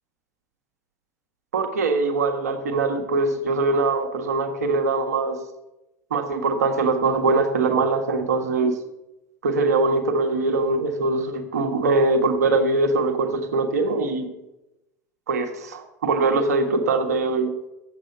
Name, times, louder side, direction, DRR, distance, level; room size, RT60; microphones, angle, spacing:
voice 1, 1.5-5.4 6.1-8.7 9.4-14.3 15.3-17.5, right 3 dB, 75° right, 4 dB, 1.4 m, -22 dB
7.8 x 7.5 x 6.7 m, 0.93 s
figure-of-eight pair, 80°, 9 cm